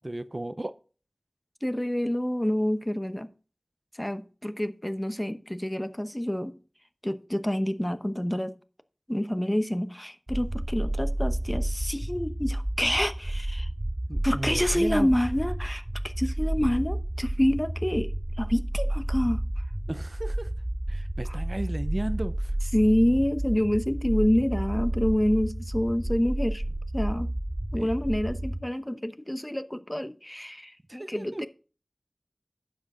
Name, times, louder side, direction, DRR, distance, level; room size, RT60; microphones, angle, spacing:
voice 1, 0.0-0.7 14.1-15.1 19.9-20.5 20.9-22.5 27.7-27.9 30.9-31.5, right 1 dB, 40° right, 0.6 m, -34 dB
voice 2, 1.6-3.3 4.0-6.6 7.0-8.5 9.1-13.7 14.2-18.1 18.4-19.4 21.3-21.4 22.7-26.6 26.9-27.3 27.7-31.5, equal, 15° left, 0.9 m, -27 dB
sound 1, 10.3-28.6, right 1 dB, 25° right, 2.3 m, -31 dB
11.0 x 7.7 x 3.8 m
wide cardioid pair, 50°, 0 cm